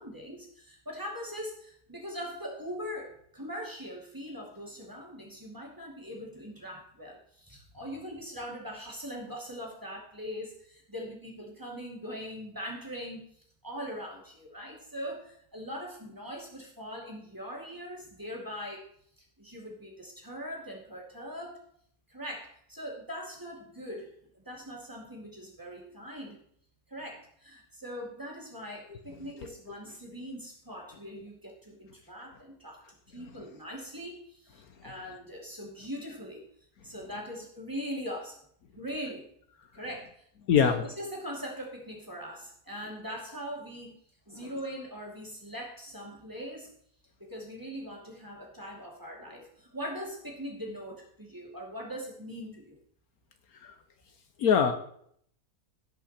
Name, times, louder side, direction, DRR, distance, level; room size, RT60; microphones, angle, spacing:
voice 1, 0.0-13.3 13.6-18.9 19.2-21.6 22.1-26.4 26.9-36.4 36.8-38.4 38.7-39.3 39.7-40.3 40.6-44.0 44.3-46.7 47.2-52.8, equal, 10° right, -2 dB, 2.4 m, -41 dB
voice 2, 40.5-40.8 44.4-44.5 53.6-53.7 54.4-54.7, left 7 dB, 70° left, 8 dB, 1.3 m, -23 dB
17.0 x 5.7 x 4.3 m, 0.65 s
omnidirectional pair, 1.7 m